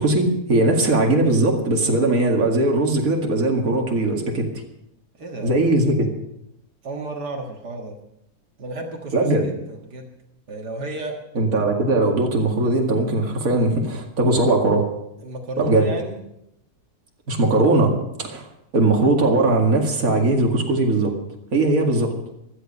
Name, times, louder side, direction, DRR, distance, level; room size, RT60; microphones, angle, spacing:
voice 1, 0.0-4.5 5.4-6.1 9.1-9.5 11.3-14.9 15.6-15.9 17.3-18.5 18.7-21.1 21.5-22.1, right 2 dB, 60° right, 1 dB, 2.5 m, -19 dB
voice 2, 5.2-5.6 6.8-8.0 8.6-10.1 10.5-11.2 15.2-16.2, right 2 dB, 80° right, 1 dB, 2.3 m, -32 dB
16.0 x 13.0 x 5.5 m, 0.80 s
omnidirectional pair, 1.7 m